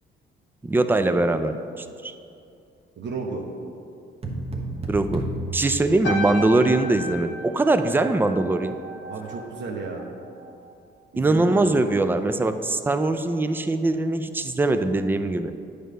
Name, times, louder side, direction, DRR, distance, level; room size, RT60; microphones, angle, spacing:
voice 1, 0.6-2.1 4.9-5.3 5.5-8.8 11.2-15.5, right 2 dB, 10° right, 9 dB, 0.4 m, -22 dB
voice 2, 3.0-3.4 9.1-10.1 11.1-11.7, right 4 dB, 60° right, 0 dB, 0.9 m, -33 dB
sound 1, 4.2-6.7, right 1 dB, 30° right, 1.1 m, -32 dB
sound 2, 6.0-10.7 10.9-11.3, equal, 70° left, 0.9 m, -35 dB
9.0 x 3.4 x 6.5 m, 2.6 s
cardioid pair, 90°, 20 cm